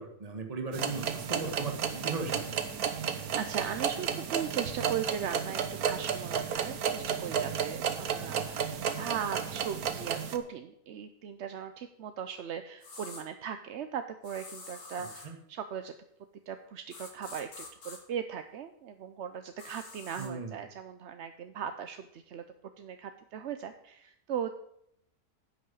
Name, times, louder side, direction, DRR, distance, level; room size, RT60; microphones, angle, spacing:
voice 1, 0.0-2.5 15.0-15.3 20.2-20.5, right 4 dB, 25° right, 4 dB, 1.5 m, -37 dB
sound 1, 0.7-10.4, right 7 dB, 75° right, 1.5 m, -33 dB
voice 2, 3.0-16.0 16.5-22.4 22.8-24.5, right 8 dB, 60° right, 8 dB, 0.8 m, -38 dB
sound 2, 12.8-13.2 14.2-15.3 16.9-18.0 19.6-20.3, left 3 dB, 85° left, 2.5 m, -47 dB
10.5 x 6.2 x 8.4 m, 0.74 s
omnidirectional pair, 1.6 m